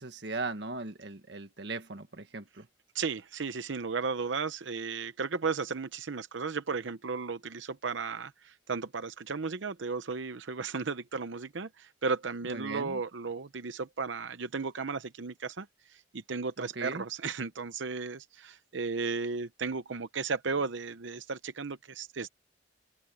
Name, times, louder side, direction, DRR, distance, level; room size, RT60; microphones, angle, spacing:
voice 1, 0.0-2.7 12.4-13.0 16.6-17.0, right 3 dB, 65° right, 1.8 m, -38 dB
voice 2, 3.0-8.3 8.7-11.7 12.0-15.6 16.3-18.2 18.7-22.3, right 4 dB, 80° right, 0.8 m, -34 dB
open air
head